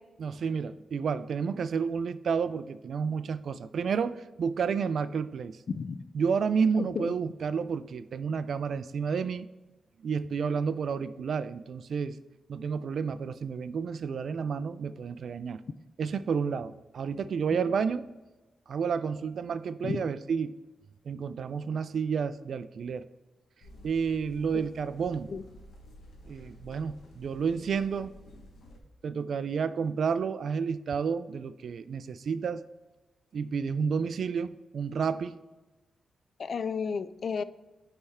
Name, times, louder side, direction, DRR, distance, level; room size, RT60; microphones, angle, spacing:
voice 1, 0.2-5.6 6.1-9.5 10.0-12.2 12.5-15.6 16.0-18.1 18.7-20.5 21.1-23.0 23.8-25.3 26.3-28.1 29.0-32.6 33.3-35.4, right 6 dB, 70° right, 13 dB, 0.3 m, -30 dB
voice 2, 5.7-6.0 6.8-7.1 19.8-20.0 25.3-25.4 36.4-37.4, left 5 dB, 60° left, 14 dB, 0.3 m, -32 dB
sound 1, 23.6-28.8, equal, 80° left, 1.0 m, -51 dB
9.7 x 3.3 x 3.5 m, 1.1 s
cardioid pair, 65°, 0 cm